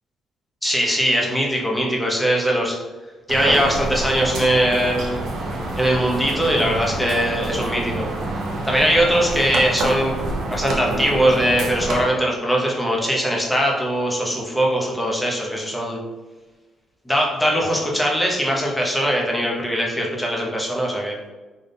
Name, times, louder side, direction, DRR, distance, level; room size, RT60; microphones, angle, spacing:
voice 1, 0.6-2.8 3.3-5.2 5.8-8.0 8.6-10.1 10.5-16.0 17.1-21.2, equal, 5° left, -2 dB, 1.0 m, -21 dB
sound 1, 3.3-12.0, right 2 dB, 75° right, 0.8 m, -27 dB
4.1 x 2.5 x 3.5 m, 1.2 s
cardioid pair, 90°, 0 cm